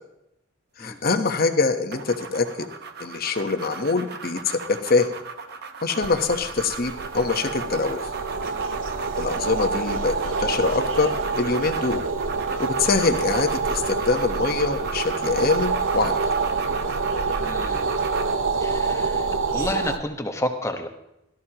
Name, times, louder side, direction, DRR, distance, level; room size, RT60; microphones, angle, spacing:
voice 1, 0.8-2.5 3.0-5.1 5.8-8.0 9.2-12.0 12.6-16.2, left 4 dB, 50° left, 7 dB, 1.2 m, -24 dB
sound 1, 1.9-18.4, right 4 dB, 55° right, 1.1 m, -36 dB
sound 2, 6.0-20.0, right 4 dB, 80° right, 0.9 m, -27 dB
voice 2, 17.4-17.9 18.6-19.3 19.5-20.9, left 1 dB, 15° left, 5 dB, 1.3 m, -30 dB
17.5 x 13.0 x 3.0 m, 0.85 s
head